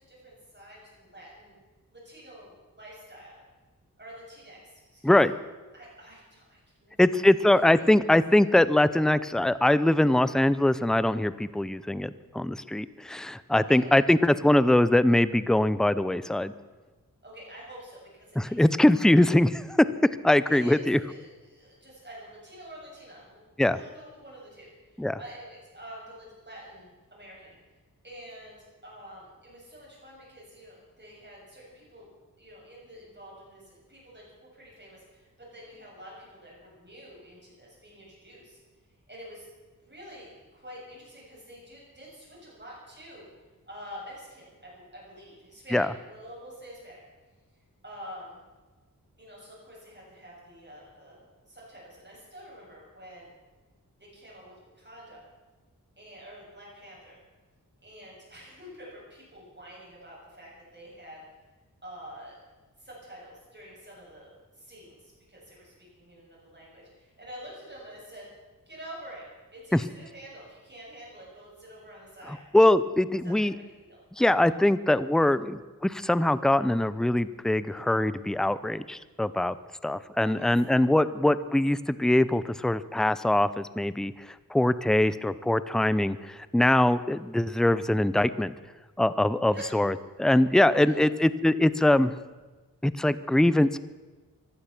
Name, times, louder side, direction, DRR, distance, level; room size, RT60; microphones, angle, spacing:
voice 1, 0.0-1.6 1.9-3.4 4.0-5.2 5.7-7.8 13.5-14.0 17.2-18.8 20.5-27.6 28.0-28.6 28.8-32.1 32.4-38.6 39.1-39.5 39.8-43.3 43.7-47.0 47.8-48.4 49.2-51.2 51.5-53.3 54.0-55.2 56.0-57.2 57.8-61.2 61.8-62.4 62.8-68.3 68.7-69.2 69.5-72.4 73.2-73.3 73.8-74.0 80.2-80.5 89.5-89.7 90.8-91.0, equal, 30° right, -5 dB, 7.0 m, -47 dB
voice 2, 7.0-16.5 18.4-19.9 20.2-21.0 23.6-23.8 25.0-25.2 45.7-45.9 69.7-69.8 72.5-73.5 74.2-79.6 79.8-84.1 84.5-88.5 89.0-92.1 92.8-93.8, left 1 dB, ahead, 16 dB, 0.6 m, -22 dB
16.0 x 12.0 x 7.1 m, 1.3 s
wide cardioid pair, 70°, 34 cm